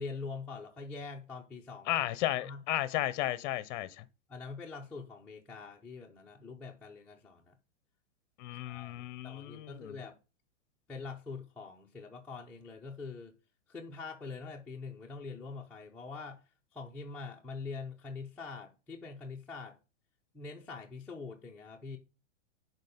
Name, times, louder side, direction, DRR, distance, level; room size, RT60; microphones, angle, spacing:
voice 1, 0.0-2.1 2.4-2.6 4.3-7.6 8.7-8.9 9.2-10.2 10.9-13.3 13.7-16.4 16.7-19.8 20.3-22.0, left 4 dB, 5° left, 0.5 m, -44 dB
voice 2, 1.9-4.0 8.4-10.0, left 14 dB, 40° left, 0.7 m, -34 dB
6.6 x 4.2 x 5.1 m
hypercardioid pair, 145°, 36 cm